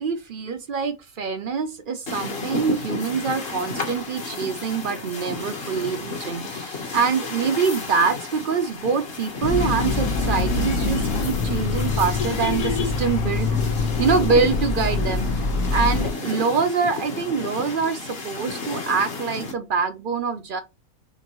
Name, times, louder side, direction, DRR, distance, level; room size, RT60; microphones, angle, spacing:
voice 1, 0.0-20.6, right 5 dB, 65° right, 0.5 m, -25 dB
sound 1, 2.1-19.5, left 3 dB, 45° left, 1.2 m, -33 dB
sound 2, 9.4-16.1, left 3 dB, 85° left, 1.4 m, -24 dB
6.6 x 2.6 x 2.9 m
omnidirectional pair, 1.5 m